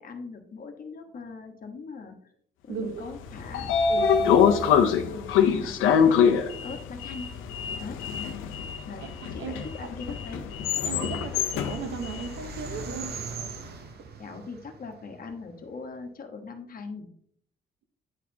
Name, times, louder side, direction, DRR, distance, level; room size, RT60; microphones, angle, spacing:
voice 1, 0.0-2.1 2.6-3.7 4.2-4.8 5.0-6.3 6.6-7.4 7.8-8.0 8.9-10.5 14.2-17.1, left 4 dB, 45° left, 1.2 m, -40 dB
voice 2, 2.7-3.1 3.9-4.4 7.0-7.1 9.0-9.9 10.8-13.2, right 6 dB, 75° right, 1.0 m, -37 dB
Sliding door, 3.1-13.3, left 7 dB, 90° left, 0.7 m, -25 dB
sound 1, 10.3-15.7, right 7 dB, 55° right, 0.6 m, -42 dB
9.8 x 4.2 x 2.8 m
cardioid pair, 90°, 20 cm